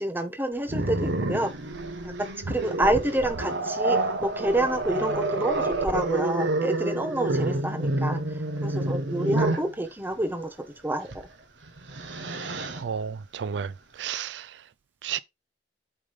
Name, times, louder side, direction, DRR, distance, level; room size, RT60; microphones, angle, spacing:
voice 1, 0.0-1.5 2.5-8.2 8.6-10.5 10.8-11.1, right 1 dB, 10° right, 1.1 m, -28 dB
Growling, 0.7-9.7 11.1-11.3 11.7-12.8, right 2 dB, 90° right, 1.1 m, -28 dB
voice 2, 12.7-13.7 14.0-14.6 15.0-15.2, right 7 dB, 70° right, 0.4 m, -32 dB
8.4 x 3.7 x 5.1 m
head